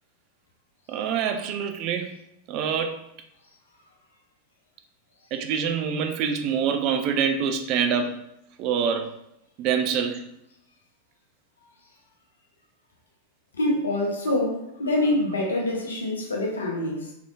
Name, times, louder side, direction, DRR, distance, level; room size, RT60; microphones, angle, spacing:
voice 1, 0.9-2.1 2.5-3.0 5.3-8.2 8.6-9.2 9.6-10.3, right 7 dB, 40° right, 0.4 m, -25 dB
voice 2, 13.5-17.1, left 1 dB, 70° left, 0.7 m, -25 dB
3.5 x 3.4 x 2.3 m
figure-of-eight pair, 90°, 0 cm